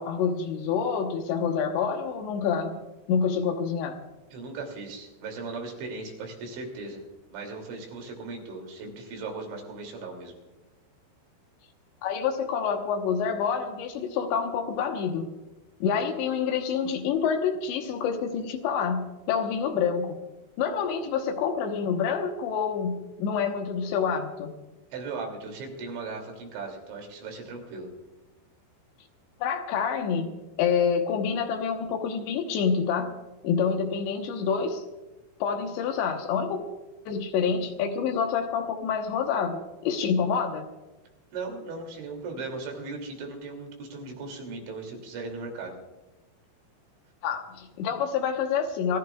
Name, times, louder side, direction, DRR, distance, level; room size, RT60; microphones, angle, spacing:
voice 1, 0.0-2.8 3.1-3.9 12.0-15.3 15.8-20.2 20.6-24.5 29.4-33.1 33.4-34.8 35.4-36.6 37.1-40.7 47.2-49.0, left 6 dB, 75° left, 4 dB, 3.2 m, -27 dB
voice 2, 4.3-7.0 7.3-10.3 24.9-27.9 41.3-45.8, right 3 dB, 75° right, 2 dB, 5.1 m, -37 dB
27.5 x 15.5 x 2.4 m, 1.1 s
omnidirectional pair, 5.4 m